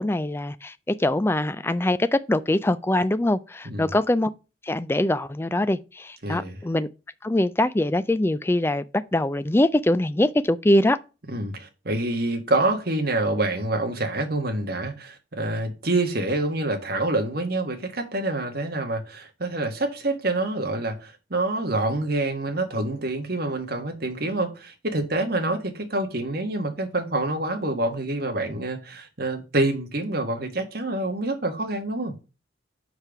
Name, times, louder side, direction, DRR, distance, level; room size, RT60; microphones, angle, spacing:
voice 1, 0.0-4.3 4.6-6.9 7.2-8.8 9.1-11.0, left 1 dB, 10° left, 0.3 m, -23 dB
voice 2, 6.2-6.6 11.3-32.1, right 2 dB, 50° right, 1.5 m, -27 dB
5.1 x 4.6 x 5.8 m
head